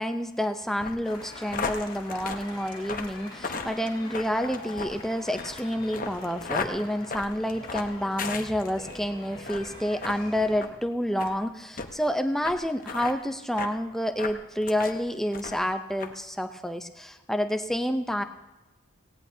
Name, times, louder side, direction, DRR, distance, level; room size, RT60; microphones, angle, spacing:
voice 1, 0.0-18.2, equal, ahead, 7 dB, 0.6 m, -29 dB
sound 1, 0.8-9.0 9.4-9.7 10.0-10.2 10.6-10.7 11.2-11.3 11.8-11.9 12.4-12.6 12.8-13.1 13.6-13.7 14.2-15.0 15.3-15.7 16.0-16.1, left 4 dB, 40° left, 1.0 m, -35 dB
sound 2, 1.0-10.7, left 2 dB, 25° left, 3.3 m, -44 dB
18.5 x 17.0 x 2.7 m, 1.1 s
head